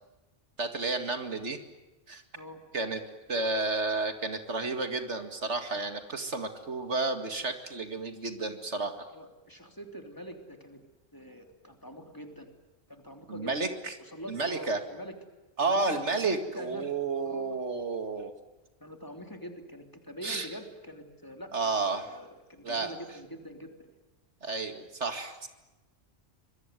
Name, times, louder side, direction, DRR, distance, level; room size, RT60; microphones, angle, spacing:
voice 1, 0.6-1.6 2.1-2.2 2.7-3.0 3.3-9.0 13.3-13.9 14.3-14.8 15.6-18.3 20.2-20.5 21.5-22.1 22.6-22.9 24.4-25.5, right 3 dB, 70° right, 7 dB, 2.5 m, -31 dB
voice 2, 9.1-10.8 11.1-12.5 12.9-13.6 14.0-15.1 15.6-16.9 17.2-17.6 18.8-21.7 22.1-23.9, equal, 15° left, 5 dB, 3.3 m, -45 dB
25.5 x 22.0 x 9.3 m, 1.1 s
omnidirectional pair, 1.2 m